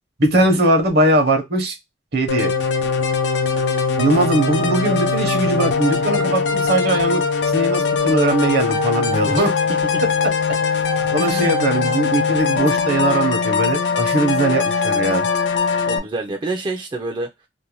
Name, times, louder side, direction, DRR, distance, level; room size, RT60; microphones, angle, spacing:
voice 1, 0.2-1.8 2.1-2.5 4.0-9.5 11.1-15.3, right 1 dB, 65° right, 0.8 m, -20 dB
sound 1, 2.3-16.0, left 5 dB, 80° left, 0.5 m, -21 dB
voice 2, 9.3-10.0 11.1-11.6 15.8-17.5, right 2 dB, 25° right, 0.4 m, -28 dB
2.6 x 2.1 x 3.0 m
head